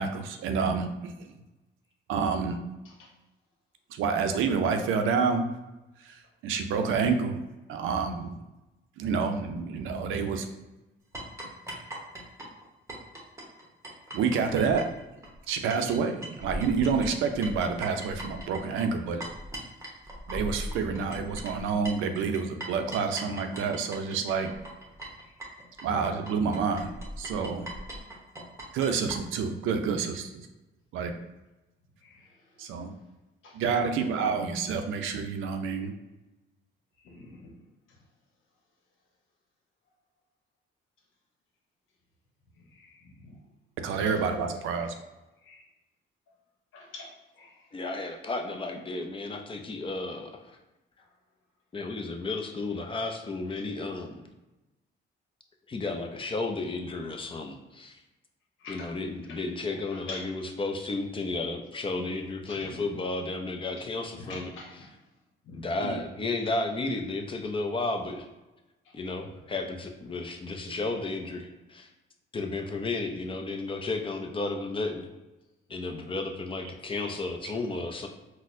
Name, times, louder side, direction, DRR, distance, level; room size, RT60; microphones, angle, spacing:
voice 1, 0.0-1.3 2.1-2.6 3.9-5.5 6.0-6.2 6.4-7.4 7.7-8.4 9.0-10.5 14.1-14.8 15.5-19.2 20.3-24.5 25.8-26.9 27.2-27.7 28.7-30.3 30.9-31.1 32.6-32.9 33.5-35.9 43.8-44.9 65.8-66.0 77.0-77.1, right 5 dB, 85° right, 6 dB, 0.4 m, -28 dB
sound 1, 11.1-29.2, right 1 dB, 15° right, 0.8 m, -40 dB
voice 2, 32.0-32.8 33.4-33.6 37.0-37.5 37.9-38.0 42.5-43.4 44.0-44.2 45.4-45.6 46.7-47.7 51.0-51.1 53.6-53.7 56.6-57.2 58.6-58.9 59.2-59.4 59.7-60.3 62.5-62.9 63.8-65.0 65.4-65.7 66.4-66.5 68.8-69.4 76.7-76.9, left 2 dB, 80° left, -1 dB, 0.9 m, -47 dB
voice 3, 47.7-50.4 51.7-54.2 55.7-58.0 58.7-64.5 65.5-68.2 68.9-71.9 72.3-75.1 75.7-78.1, left 3 dB, 25° left, 4 dB, 0.5 m, -33 dB
4.1 x 2.1 x 2.5 m, 1.0 s
cardioid pair, 90°, 20 cm